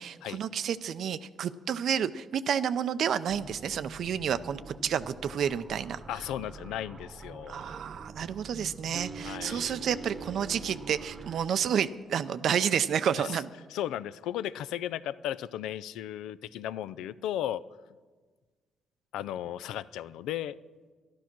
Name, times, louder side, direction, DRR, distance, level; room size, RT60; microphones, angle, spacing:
voice 1, 0.0-6.2 7.5-13.5, right 8 dB, 65° right, 12 dB, 0.5 m, -30 dB
sound 1, 3.3-11.4, right 4 dB, 35° right, 0.9 m, -44 dB
voice 2, 6.1-7.8 9.2-9.7 13.2-13.3 13.7-17.6 19.1-20.6, left 11 dB, 90° left, 17 dB, 0.4 m, -35 dB
12.5 x 11.5 x 6.0 m, 1.4 s
cardioid pair, 90°, 0 cm